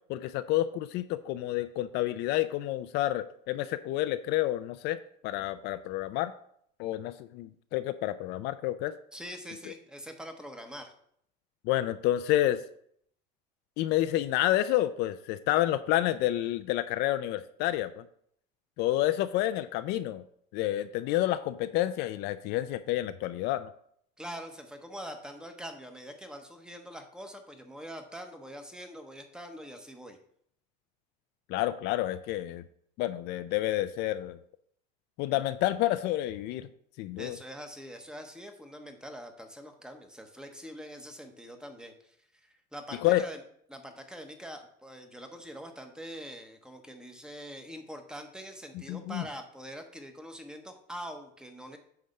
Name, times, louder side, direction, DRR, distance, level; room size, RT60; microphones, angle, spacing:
voice 1, 0.1-5.0 5.2-6.3 6.8-8.9 11.6-12.6 13.8-18.0 18.8-20.2 20.5-23.7 31.5-32.6 33.0-34.4 35.2-36.7 37.0-37.4 43.0-43.2 48.9-49.2, left 14 dB, 55° left, 11 dB, 0.4 m, -29 dB
voice 2, 9.1-10.9 24.2-30.2 37.2-43.4 43.7-51.8, equal, 5° right, 5 dB, 0.9 m, -44 dB
9.2 x 3.4 x 6.5 m, 0.67 s
cardioid pair, 145°, 20 cm